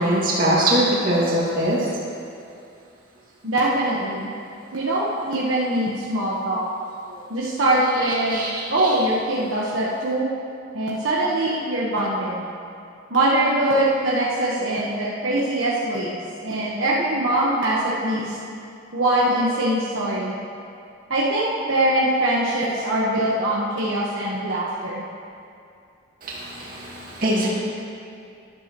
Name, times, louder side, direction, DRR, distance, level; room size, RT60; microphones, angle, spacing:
voice 1, 0.0-1.9 7.1-7.2 8.0-9.0 26.2-27.5, right 1 dB, 40° right, -7 dB, 2.1 m, -23 dB
voice 2, 3.4-4.3 4.7-6.6 7.3-8.4 8.7-10.3 10.7-12.4 13.1-16.2 16.4-18.4 18.9-20.4 21.1-25.0, right 1 dB, 70° right, -6 dB, 1.2 m, -22 dB
13.0 x 11.0 x 3.1 m, 2.5 s
head